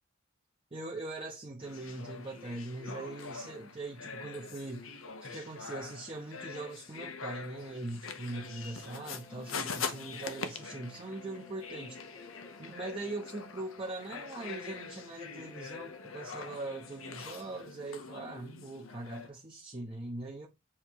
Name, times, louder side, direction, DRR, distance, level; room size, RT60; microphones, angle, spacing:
voice 1, 0.7-12.0 12.6-20.5, right 2 dB, 25° right, 0.9 m, -41 dB
sound 1, 1.6-19.3, left 5 dB, 75° left, 1.0 m, -44 dB
sound 2, 8.3-17.6, left 3 dB, 10° left, 0.8 m, -58 dB
7.2 x 3.1 x 4.7 m
head